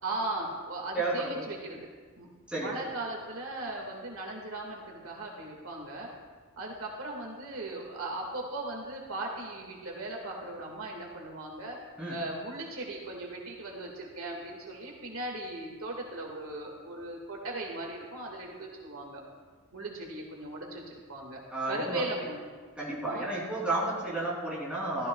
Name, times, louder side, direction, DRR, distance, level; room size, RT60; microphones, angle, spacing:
voice 1, 0.0-1.9 2.2-2.3 2.5-6.1 6.6-11.8 12.1-19.2 19.7-21.4 21.7-22.4 23.1-23.3, right 2 dB, 80° right, -1 dB, 1.9 m, -38 dB
voice 2, 0.9-1.5 2.5-2.7 12.0-12.2 21.5-22.0 22.8-25.1, right 2 dB, 5° right, -7 dB, 3.1 m, -32 dB
15.0 x 13.5 x 2.3 m, 1.5 s
head